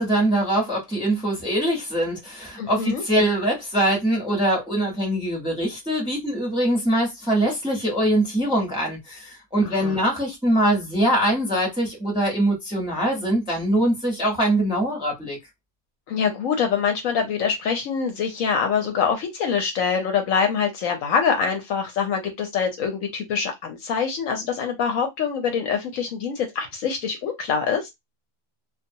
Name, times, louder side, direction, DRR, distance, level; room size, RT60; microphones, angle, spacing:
voice 1, 0.0-15.4, right 1 dB, 5° right, 0.7 m, -23 dB
voice 2, 2.6-3.0 9.6-10.0 16.1-27.9, left 6 dB, 70° left, 0.9 m, -24 dB
2.3 x 2.3 x 2.6 m
omnidirectional pair, 1.6 m